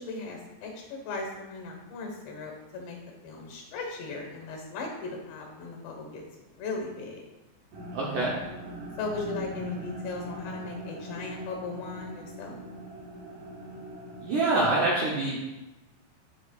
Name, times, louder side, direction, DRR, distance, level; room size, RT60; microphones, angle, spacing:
voice 1, 0.0-3.0 3.2-6.2 6.5-7.2 9.0-12.5, left 3 dB, 80° left, 1 dB, 3.5 m, -37 dB
sound 1, 7.7-14.4, equal, 60° right, 2.1 m, -41 dB
voice 2, 7.9-8.3 14.2-15.6, right 2 dB, 75° right, -5 dB, 1.8 m, -26 dB
12.5 x 4.8 x 2.4 m, 1.0 s
omnidirectional pair, 4.9 m